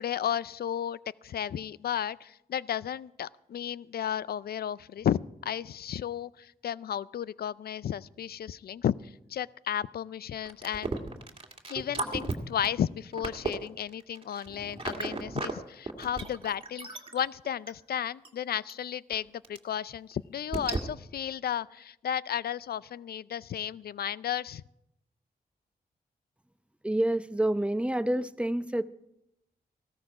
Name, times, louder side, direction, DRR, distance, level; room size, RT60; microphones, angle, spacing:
voice 1, 0.0-10.9 11.7-24.6, left 9 dB, 70° left, 20 dB, 0.4 m, -33 dB
sound 1, 10.4-15.5 15.9-17.7 18.2-18.3 18.7-18.8 19.1-19.2 19.4-19.6 20.1-20.2 20.5-20.8, right 3 dB, 35° right, 2.1 m, -35 dB
voice 2, 26.8-28.8, right 1 dB, 5° right, 12 dB, 0.7 m, -28 dB
16.0 x 13.5 x 4.8 m, 0.81 s
cardioid pair, 65°, 17 cm